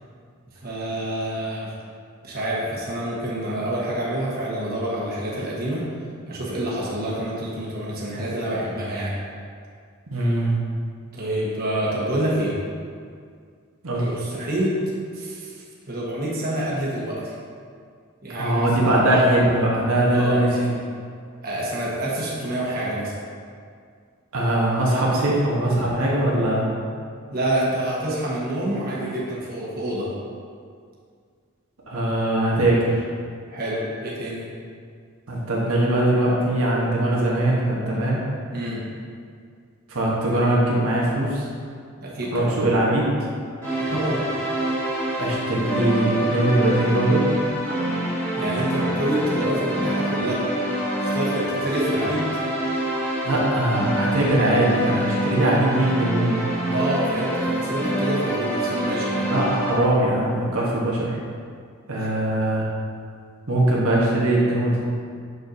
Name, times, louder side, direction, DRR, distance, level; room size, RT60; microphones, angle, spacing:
voice 1, 0.6-1.7 2.2-5.8 6.3-9.2 11.1-12.5 13.9-14.8 15.1-17.3 18.2-19.0 20.1-20.4 21.4-23.1 27.3-30.1 33.5-34.4 38.5-38.8 42.0-42.5 43.8-44.3 48.3-50.5 51.0-52.3 56.7-59.4 62.0-62.1, right 1 dB, 45° right, -6 dB, 1.2 m, -27 dB
voice 2, 10.1-10.6 13.8-14.1 18.3-20.5 24.3-26.7 31.9-33.1 35.3-38.2 39.9-41.4 42.3-43.1 45.2-47.3 53.2-56.4 59.3-61.2 61.9-62.6 63.5-64.8, right 1 dB, 80° right, -5 dB, 1.1 m, -21 dB
sound 1, 43.6-59.8, right 1 dB, 10° left, 1.6 m, -26 dB
6.5 x 6.5 x 2.7 m, 2.2 s
head